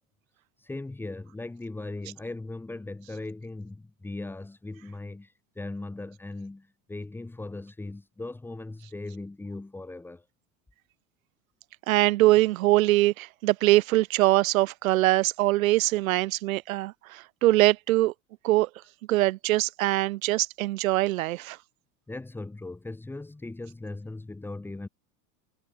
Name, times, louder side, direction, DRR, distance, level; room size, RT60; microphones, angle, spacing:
voice 1, 0.6-10.3 22.1-24.9, left 2 dB, 5° left, 5.3 m, -38 dB
voice 2, 11.9-18.1 18.4-18.7 19.1-21.6, right 17 dB, 65° right, 1.6 m, -23 dB
supercardioid pair, 170°, 44 cm